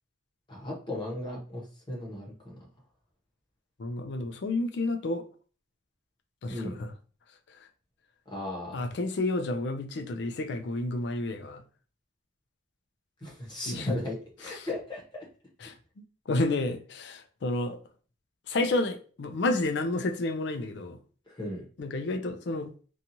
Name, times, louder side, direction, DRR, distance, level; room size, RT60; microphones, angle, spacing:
voice 1, 0.5-2.3 6.5-6.7 8.3-8.8 13.2-15.3 21.3-21.6, left 1 dB, 25° left, 0.9 m, -36 dB
voice 2, 3.8-5.2 6.4-6.9 8.7-11.6 13.7-13.9 14.5-14.7 15.6-15.7 16.3-17.8 18.5-21.0 21.8-22.7, left 2 dB, 60° left, 0.4 m, -30 dB
2.8 x 2.4 x 2.6 m
head